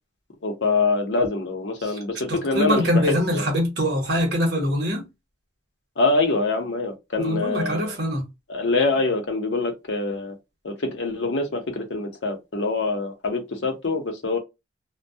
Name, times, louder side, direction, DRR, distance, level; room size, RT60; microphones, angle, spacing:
voice 1, 0.4-3.5 6.0-8.0 8.5-10.3 10.6-14.4, left 3 dB, 75° left, 0.7 m, -25 dB
voice 2, 2.3-5.1 7.2-8.2, equal, 60° right, 0.9 m, -23 dB
2.2 x 2.1 x 2.6 m
head